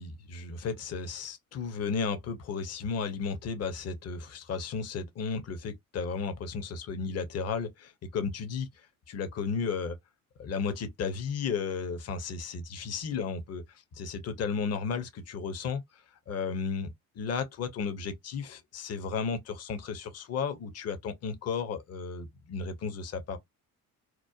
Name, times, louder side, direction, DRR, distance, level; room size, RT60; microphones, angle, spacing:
voice 1, 0.0-8.7 9.1-10.0 10.4-23.4, left 5 dB, 35° left, 0.7 m, -34 dB
3.0 x 2.0 x 2.4 m
hypercardioid pair, 55°, 43 cm